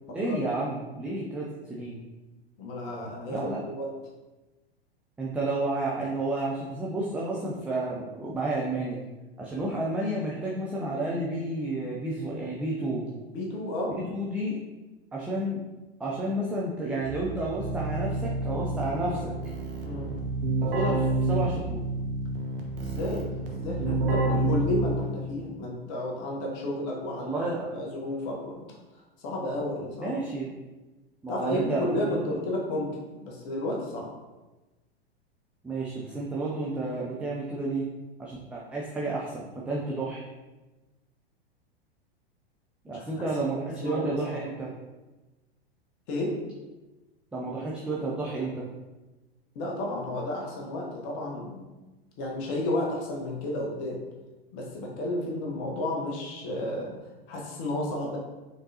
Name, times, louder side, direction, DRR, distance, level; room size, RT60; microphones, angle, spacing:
voice 1, 0.1-2.0 3.3-3.6 5.2-9.0 9.4-13.0 13.9-14.6 15.1-15.6 16.0-19.3 20.6-21.8 27.2-27.7 30.0-30.5 31.2-32.4 35.6-37.8 38.2-40.2 42.8-44.7 47.3-48.6, right 2 dB, 5° right, -5 dB, 0.3 m, -31 dB
voice 2, 2.6-3.9 13.3-14.0 19.8-20.1 22.8-27.4 27.7-28.6 29.2-30.4 31.3-34.1 42.9-43.2 43.8-44.4 46.1-46.3 49.5-51.7 52.2-54.0 54.5-56.9 57.3-58.2, left 1 dB, 40° left, -2 dB, 1.0 m, -32 dB
Keyboard (musical), 17.0-25.3, right 2 dB, 60° right, 1.0 m, -29 dB
5.2 x 3.7 x 2.7 m, 1.1 s
figure-of-eight pair, 95°, 31 cm